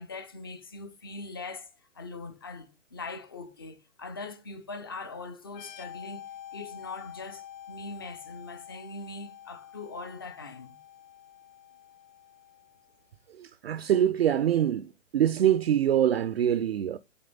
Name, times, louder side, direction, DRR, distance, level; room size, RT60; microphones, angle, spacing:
voice 1, 0.0-1.7 1.9-10.8, left 3 dB, 20° left, 0.4 m, -41 dB
sound 1, 5.5-13.0, left 10 dB, 35° left, 0.8 m, -47 dB
voice 2, 13.4-17.0, right 10 dB, 55° right, 0.4 m, -24 dB
7.7 x 3.1 x 3.9 m
figure-of-eight pair, 130°, 38 cm